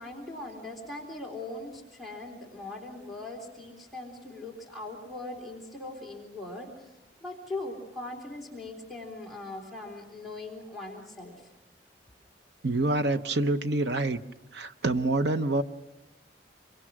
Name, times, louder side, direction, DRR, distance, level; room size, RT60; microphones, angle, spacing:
voice 1, 0.0-6.9 7.2-11.5, left 2 dB, ahead, -4 dB, 3.5 m, -40 dB
voice 2, 12.6-14.2 14.5-15.6, right 2 dB, 70° right, 10 dB, 0.9 m, -26 dB
27.0 x 24.0 x 6.1 m, 1.0 s
head